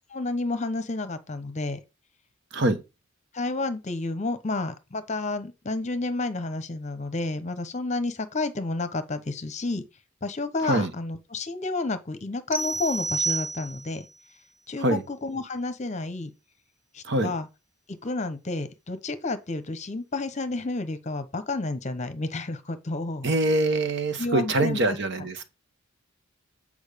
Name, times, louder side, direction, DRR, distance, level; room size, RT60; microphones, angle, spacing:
voice 1, 0.1-1.8 3.3-9.8 10.2-14.0 14.7-16.3 16.9-17.5 17.9-23.3 24.2-25.0, left 2 dB, 30° left, 0.9 m, -30 dB
sound 1, 12.5-14.1, right 3 dB, 25° right, 1.3 m, -29 dB
voice 2, 23.2-25.5, right 2 dB, 50° right, 1.2 m, -24 dB
8.8 x 5.1 x 5.1 m
head